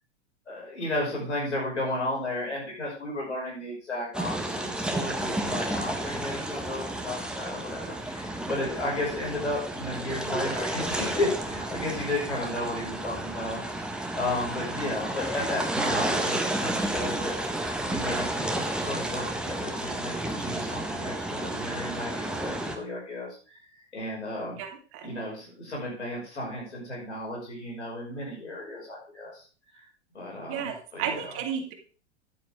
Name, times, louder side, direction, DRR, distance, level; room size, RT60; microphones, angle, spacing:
voice 1, 0.5-13.6 14.2-17.3 17.9-23.6 23.9-24.6 25.0-29.4 30.1-31.2, left 1 dB, 85° left, -2 dB, 5.7 m, -33 dB
sound 1, 4.1-22.8, right 1 dB, ahead, 1.4 m, -31 dB
voice 2, 24.6-25.1 30.5-31.7, right 8 dB, 40° right, 5 dB, 2.1 m, -33 dB
10.0 x 9.1 x 3.6 m, 0.37 s
figure-of-eight pair, 100°, 34 cm